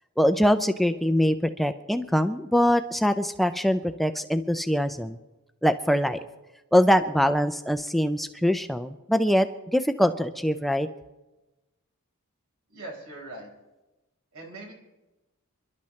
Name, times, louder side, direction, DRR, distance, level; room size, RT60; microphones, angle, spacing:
voice 1, 0.2-5.2 5.6-6.2 6.7-9.5 9.7-10.9, equal, ahead, 9 dB, 0.4 m, -23 dB
voice 2, 12.7-13.5 14.3-14.7, right 2 dB, 80° right, 0 dB, 4.7 m, -41 dB
28.5 x 12.0 x 3.2 m, 1.0 s
head